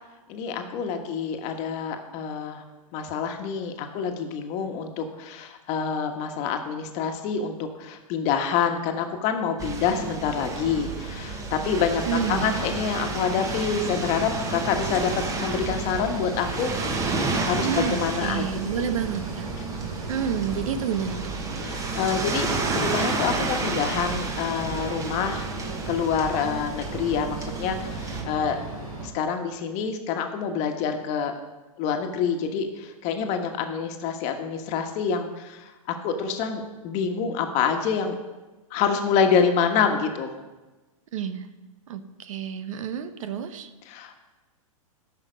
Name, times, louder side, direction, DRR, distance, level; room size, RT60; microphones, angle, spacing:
voice 1, 0.3-2.6 2.9-16.7 17.4-18.6 21.6-25.5 25.9-28.6 29.0-31.3 31.8-38.2 38.7-40.3 43.9-44.1, left 6 dB, 40° left, 5 dB, 1.3 m, -27 dB
sound 1, 9.6-28.2, right 3 dB, 15° right, 1.3 m, -31 dB
sound 2, 12.0-29.1, right 3 dB, 85° right, 3.1 m, -37 dB
voice 2, 12.1-12.7 17.6-19.5 20.1-21.4 41.1-41.5 41.9-43.7, right 7 dB, 65° right, 10 dB, 1.0 m, -29 dB
13.0 x 5.7 x 5.2 m, 1.2 s
hypercardioid pair, 120°, 18 cm